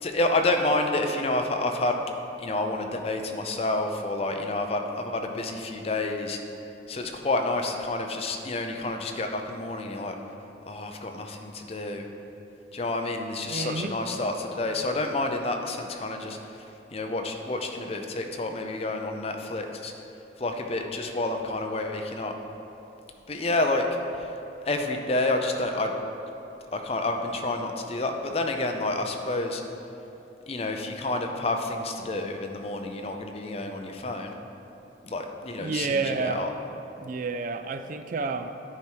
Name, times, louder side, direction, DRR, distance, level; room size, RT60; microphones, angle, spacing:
voice 1, 0.0-1.9 2.4-6.4 6.9-10.1 10.7-12.0 12.7-16.4 16.9-19.9 20.4-22.3 23.3-23.9 24.7-25.9 26.7-29.6 30.5-34.3 35.0-36.5, left 2 dB, 35° left, 4 dB, 0.5 m, -29 dB
voice 2, 13.5-14.2 35.6-36.4 37.0-38.5, right 4 dB, 45° right, 8 dB, 0.4 m, -30 dB
10.5 x 4.7 x 4.5 m, 2.9 s
head